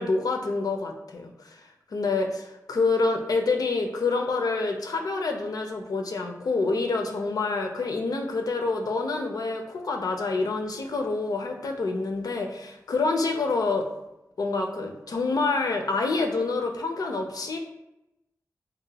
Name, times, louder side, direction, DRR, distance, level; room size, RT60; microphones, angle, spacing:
voice 1, 0.0-13.9 14.4-17.6, left 3 dB, 70° left, 4 dB, 0.4 m, -27 dB
2.9 x 2.0 x 2.8 m, 0.92 s
cardioid pair, 50°, 7 cm